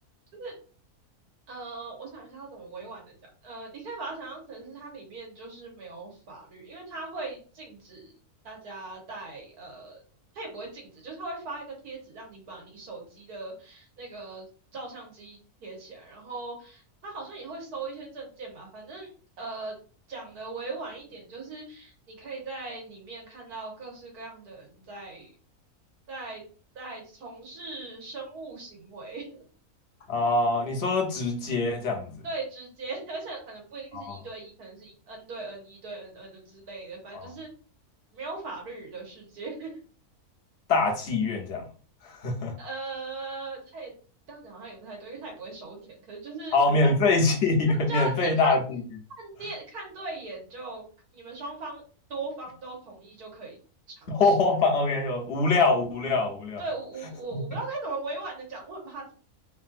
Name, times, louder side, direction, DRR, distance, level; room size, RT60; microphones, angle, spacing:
voice 1, 1.5-3.1 3.4-8.1 8.4-10.0 10.3-19.1 19.4-19.7 20.1-25.3 26.1-26.4 26.7-29.4 32.2-37.5 38.1-39.7 42.6-43.9 44.3-46.9 47.9-48.5 49.1-50.9 51.1-51.8 52.1-53.6 54.0-54.4 56.6-59.1, right 3 dB, 85° right, 1.7 m, -39 dB
voice 2, 30.1-32.1 33.9-34.2 37.1-37.3 40.7-41.6 42.2-42.5 46.5-48.8 54.1-56.6, left 3 dB, 55° left, 0.8 m, -24 dB
3.4 x 2.6 x 2.4 m
omnidirectional pair, 1.6 m